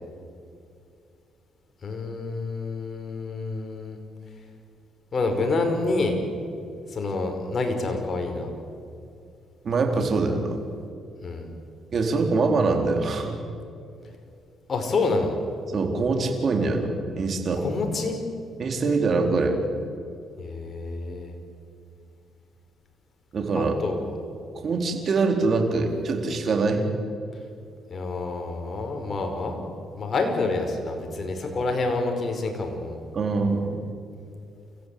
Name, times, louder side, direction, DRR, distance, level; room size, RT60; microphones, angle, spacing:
voice 1, 1.8-4.0 5.1-6.2 6.9-8.5 11.2-11.5 14.7-15.3 17.5-18.2 20.4-21.3 23.5-24.1 27.9-29.6 29.9-33.0, left 3 dB, 45° left, 4 dB, 5.0 m, -28 dB
voice 2, 9.6-10.6 11.9-13.4 15.7-17.6 18.6-19.6 23.3-23.8 24.5-26.9 33.1-33.8, right 3 dB, 50° right, 4 dB, 4.0 m, -24 dB
29.0 x 15.5 x 8.6 m, 2.5 s
cardioid pair, 90°, 0 cm